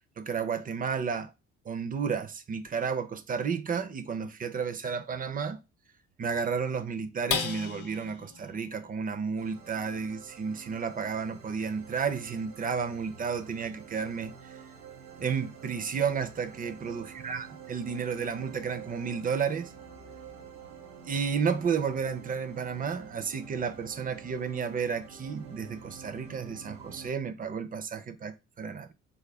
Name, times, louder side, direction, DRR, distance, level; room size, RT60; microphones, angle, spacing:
voice 1, 0.2-1.3 1.7-5.6 6.2-14.3 15.2-19.7 21.1-28.9, right 6 dB, 30° right, 0.4 m, -32 dB
sound 1, 7.3-14.0 14.5-14.6 15.0-15.5, left 7 dB, 80° left, 0.7 m, -40 dB
sound 2, 9.4-27.1, right 7 dB, 90° right, 1.2 m, -48 dB
3.5 x 2.2 x 3.2 m
cardioid pair, 105°, 30 cm